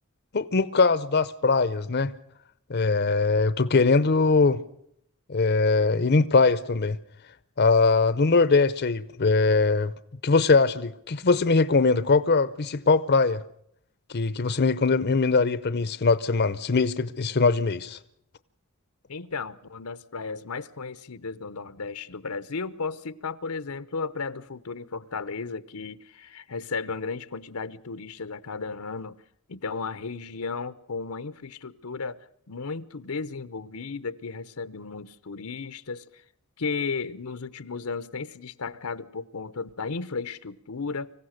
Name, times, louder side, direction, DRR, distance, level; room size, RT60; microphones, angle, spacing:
voice 1, 0.3-2.1 2.7-4.6 5.3-7.0 7.6-9.9 10.2-13.4 14.1-18.0, left 4 dB, 50° left, 0.7 m, -21 dB
voice 2, 19.1-29.2 29.5-36.2 36.6-41.1, left 4 dB, 80° left, 0.9 m, -34 dB
25.5 x 16.0 x 6.5 m
head